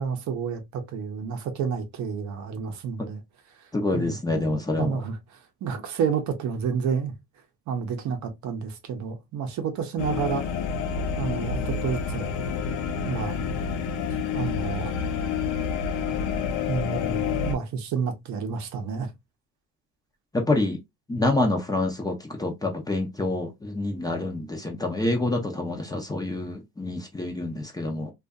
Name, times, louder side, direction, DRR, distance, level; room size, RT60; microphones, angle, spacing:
voice 1, 0.0-3.2 3.9-5.2 5.6-7.1 7.7-10.5 11.1-12.3 13.0-13.4 14.3-14.9 16.7-19.1, right 6 dB, 55° right, 0.7 m, -30 dB
voice 2, 3.7-5.0 20.3-20.8 21.1-28.1, left 2 dB, 10° left, 0.5 m, -27 dB
sound 1, 10.0-17.5, left 6 dB, 80° left, 0.6 m, -28 dB
2.5 x 2.4 x 2.2 m
cardioid pair, 120°, 34 cm